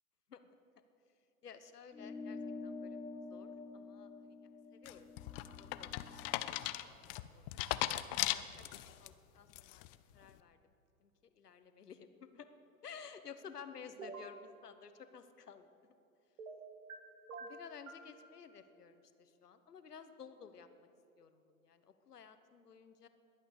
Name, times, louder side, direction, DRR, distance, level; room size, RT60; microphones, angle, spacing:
voice 1, 1.4-4.4 4.8-5.1 5.6-5.9 6.5-6.6 7.0-7.8 8.2-8.7 9.0-9.8 10.1-10.6 11.0-12.5 12.8-15.7 17.4-20.9 21.2-23.1, left 6 dB, 80° left, 10 dB, 1.2 m, -54 dB
sound 1, 1.9-6.7, left 3 dB, 5° left, 0.8 m, -48 dB
sound 2, 4.9-9.1 9.5-10.0, left 16 dB, 35° left, 0.6 m, -38 dB
sound 3, 14.0-14.3 16.4-17.0 17.3-18.1, right 4 dB, 65° right, 2.0 m, -47 dB
21.0 x 8.9 x 6.8 m, 2.7 s
figure-of-eight pair, 100°, 46 cm